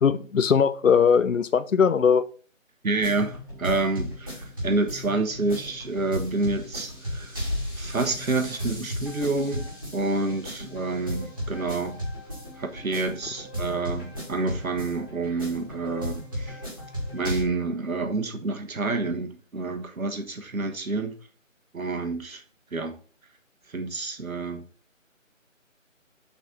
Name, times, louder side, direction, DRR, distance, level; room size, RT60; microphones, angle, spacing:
voice 1, 0.0-2.2, left 6 dB, 70° left, 0.6 m, -20 dB
voice 2, 2.8-7.4 7.8-12.0 12.6-16.6 17.1-21.1 21.7-22.4 22.7-23.0 23.7-24.6, right 3 dB, 85° right, 1.4 m, -28 dB
sound 1, 2.9-17.4, equal, 15° right, 1.9 m, -35 dB
6.8 x 4.3 x 3.9 m
figure-of-eight pair, 175°, 40 cm